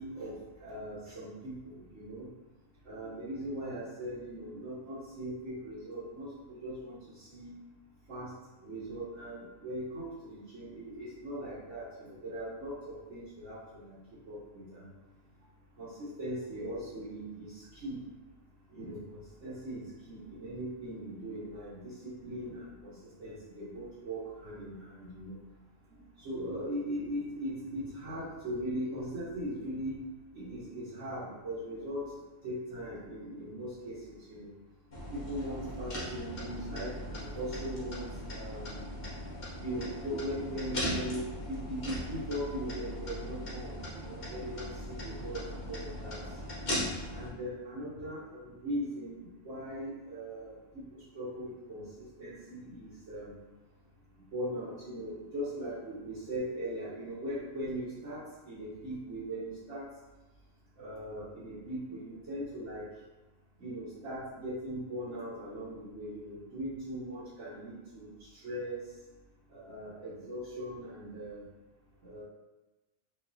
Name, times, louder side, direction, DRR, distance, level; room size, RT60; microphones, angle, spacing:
voice 1, 0.0-2.3 2.8-7.5 8.1-8.3 8.6-14.0 14.3-14.9 15.8-18.0 18.7-25.3 25.9-30.0 30.3-32.1 32.4-34.5 35.1-38.8 39.6-46.2 47.1-50.8 51.1-53.4 54.3-59.8 60.8-62.9 63.6-68.8 69.5-71.4 72.0-72.2, equal, 70° right, -11 dB, 1.4 m, -40 dB
sound 1, 34.9-47.3, equal, 40° left, 1.1 m, -39 dB
5.2 x 2.8 x 2.6 m, 1.1 s
omnidirectional pair, 1.3 m